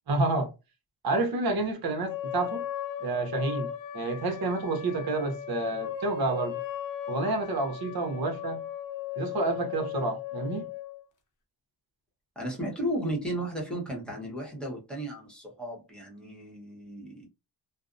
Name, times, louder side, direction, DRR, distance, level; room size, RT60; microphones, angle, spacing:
voice 1, 0.1-0.5 1.0-2.6 3.0-6.6 7.1-8.6 9.2-10.7, right 2 dB, 55° right, 0.8 m, -29 dB
sound 1, 2.0-11.0, left 9 dB, 45° left, 0.7 m, -37 dB
voice 2, 12.4-17.3, right 1 dB, ahead, 0.9 m, -34 dB
2.5 x 2.0 x 2.5 m
cardioid pair, 90°, 44 cm